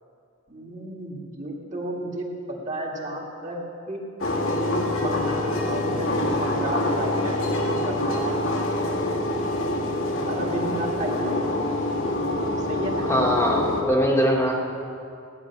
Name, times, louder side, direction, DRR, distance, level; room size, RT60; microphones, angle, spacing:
voice 1, 0.5-3.6 3.9-4.0 4.4-5.4 5.7-8.5 10.2-11.4 12.7-13.1, right 1 dB, 35° right, -1 dB, 2.3 m, -32 dB
sound 1, 4.2-13.8, left 1 dB, 75° left, 2.0 m, -25 dB
voice 2, 13.0-14.6, equal, 15° left, -2 dB, 1.5 m, -22 dB
16.5 x 10.5 x 7.2 m, 2.5 s
head